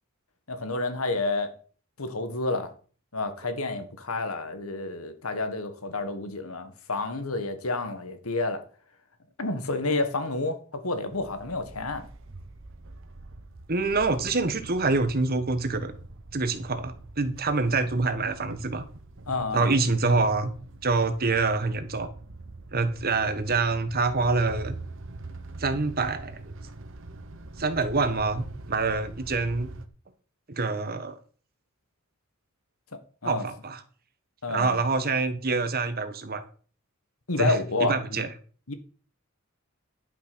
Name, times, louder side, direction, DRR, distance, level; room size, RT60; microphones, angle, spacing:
voice 1, 0.5-1.5 2.0-2.7 3.1-8.6 9.4-12.0 19.3-19.8 32.9-33.5 34.4-34.8 37.3-38.2 38.7-38.8, left 3 dB, 80° left, 1.7 m, -30 dB
sound 1, 11.1-29.9, right 2 dB, 60° right, 1.1 m, -44 dB
voice 2, 13.7-15.9 16.3-18.8 19.5-20.5 20.8-22.1 22.7-24.7 25.6-26.4 27.6-29.7 30.5-31.2 33.2-33.8 34.5-36.4 37.4-38.3, right 3 dB, 45° right, 1.2 m, -26 dB
11.0 x 6.0 x 6.1 m
head